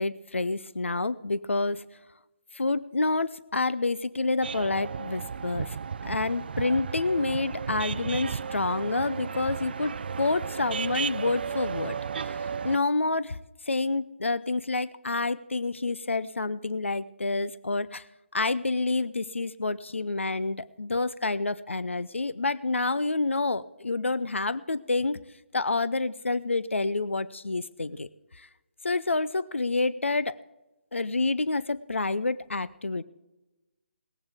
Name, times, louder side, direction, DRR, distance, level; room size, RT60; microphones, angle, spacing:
voice 1, 0.0-1.8 2.5-13.4 13.6-18.1 18.3-25.2 25.5-28.1 28.3-28.5 28.8-30.4 30.9-33.0, left 3 dB, 85° left, 17 dB, 0.6 m, -28 dB
sound 1, 4.4-12.8, right 6 dB, 55° right, 0.4 m, -34 dB
18.5 x 15.0 x 3.5 m, 1.0 s
figure-of-eight pair, 150°, 7 cm